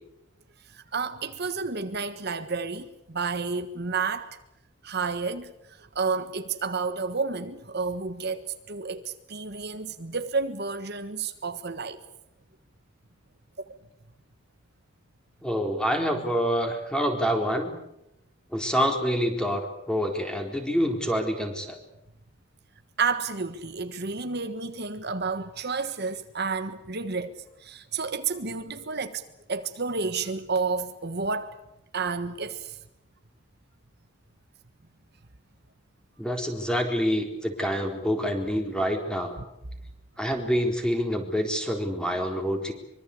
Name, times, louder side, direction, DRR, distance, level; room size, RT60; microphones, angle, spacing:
voice 1, 0.7-4.3 4.8-12.0 23.0-27.3 27.6-29.2 29.5-31.6 31.9-32.8, right 4 dB, 55° right, 1.4 m, -31 dB
voice 2, 15.4-17.7 18.5-21.8 36.2-39.3 40.2-42.7, equal, 5° left, 3.9 m, -27 dB
24.5 x 24.0 x 8.4 m
head